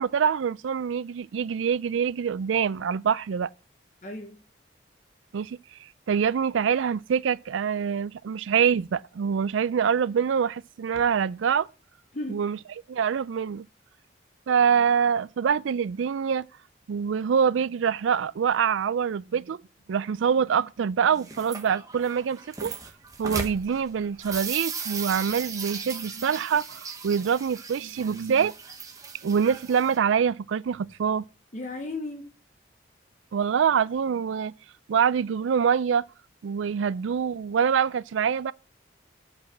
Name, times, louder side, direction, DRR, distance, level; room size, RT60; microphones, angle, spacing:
voice 1, 0.0-3.5 5.3-5.6 6.1-11.7 12.3-12.6 12.9-13.6 14.5-16.5 16.9-19.6 19.9-22.7 23.2-28.5 29.2-31.2 33.3-34.5 34.9-36.0 36.4-38.5, right 7 dB, 90° right, 0.4 m, -25 dB
voice 2, 4.0-4.4 12.1-12.4 31.5-32.3, left 2 dB, 40° left, 0.9 m, -35 dB
sound 1, 21.1-30.0, right 5 dB, 20° right, 1.0 m, -37 dB
8.2 x 4.9 x 7.4 m
head